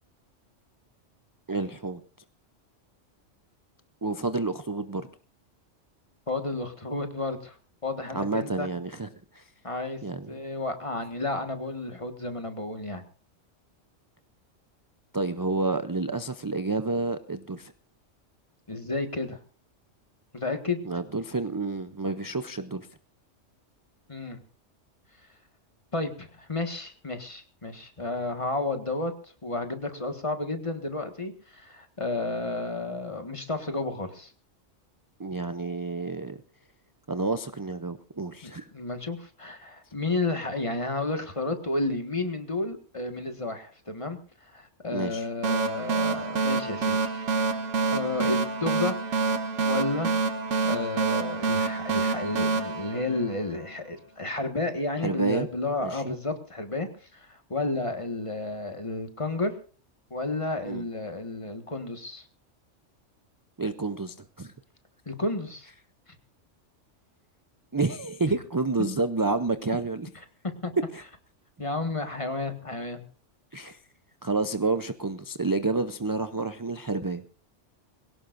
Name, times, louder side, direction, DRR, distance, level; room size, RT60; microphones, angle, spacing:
voice 1, 1.5-2.0 4.0-5.1 8.1-9.5 10.0-10.3 15.1-17.7 20.8-22.9 35.2-36.4 37.1-38.7 44.9-45.3 55.0-55.5 55.8-56.1 60.7-60.9 63.6-64.5 67.7-70.1 70.9-71.0 73.5-73.8 74.2-77.2, right 3 dB, 25° right, 10 dB, 0.5 m, -29 dB
voice 2, 6.3-7.6 7.8-8.7 9.6-10.0 10.3-13.0 18.7-19.4 20.3-20.8 24.1-24.4 25.9-34.3 38.4-47.4 47.9-49.0 49.6-50.1 50.6-59.6 60.1-62.3 65.0-65.7 70.6-70.7 71.6-73.0, left 2 dB, 25° left, 6 dB, 1.7 m, -31 dB
sound 1, 45.4-53.8, right 4 dB, 75° right, 1.5 m, -27 dB
22.5 x 17.0 x 2.6 m, 0.38 s
omnidirectional pair, 1.3 m